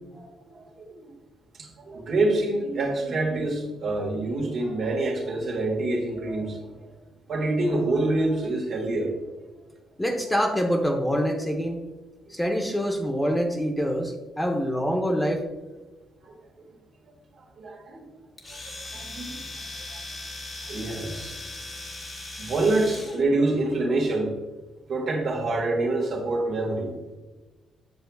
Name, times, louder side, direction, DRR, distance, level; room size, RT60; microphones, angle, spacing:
voice 1, 0.1-1.1 1.5-6.9 7.3-9.1 14.4-14.5 16.2-16.3 17.4-18.0 18.5-18.6 18.9-20.0 20.6-21.4 22.4-24.3 24.9-26.9, right 2 dB, 60° right, -1 dB, 1.8 m, -27 dB
voice 2, 10.0-11.8 12.3-15.5, equal, 10° left, 3 dB, 0.9 m, -25 dB
Domestic sounds home sounds, 18.4-23.2, left 2 dB, 35° left, 1.5 m, -38 dB
8.0 x 6.6 x 2.4 m, 1.2 s
cardioid pair, 90°, 0 cm